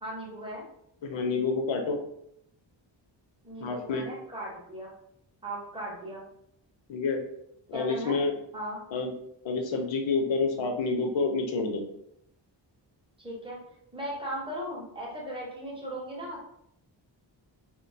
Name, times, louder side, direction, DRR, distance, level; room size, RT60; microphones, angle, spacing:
voice 1, 0.0-0.6 3.4-4.9 5.4-6.3 7.7-8.2 8.5-8.8 13.2-13.6 13.9-16.5, right 1 dB, 10° right, -4 dB, 0.6 m, -37 dB
voice 2, 1.0-2.0 3.6-4.1 6.9-7.2 7.7-8.3 8.9-9.1 9.4-11.8, left 4 dB, 85° left, 4 dB, 0.6 m, -28 dB
2.3 x 2.2 x 2.6 m, 0.74 s
wide cardioid pair, 160°, 44 cm